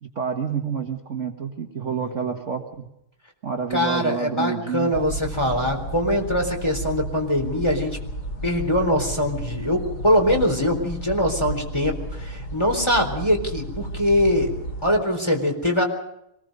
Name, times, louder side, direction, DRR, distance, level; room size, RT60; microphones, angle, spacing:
voice 1, 0.0-2.9 3.4-4.9, right 7 dB, 35° right, 3 dB, 1.7 m, -28 dB
voice 2, 2.0-2.3 3.7-8.0 8.4-14.5 14.8-15.8, left 1 dB, 10° left, 3 dB, 3.9 m, -22 dB
sound 1, 4.9-15.0, right 1 dB, 45° left, 3.5 m, -33 dB
25.5 x 20.5 x 5.4 m, 0.81 s
omnidirectional pair, 2.4 m